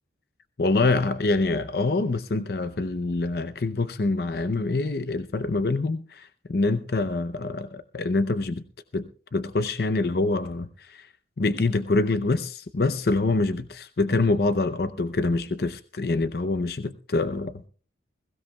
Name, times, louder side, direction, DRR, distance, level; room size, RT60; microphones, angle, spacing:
voice 1, 0.6-8.6 8.9-11.1 11.4-17.7, left 3 dB, 55° left, 11 dB, 0.6 m, -25 dB
21.5 x 16.0 x 2.3 m, 0.39 s
head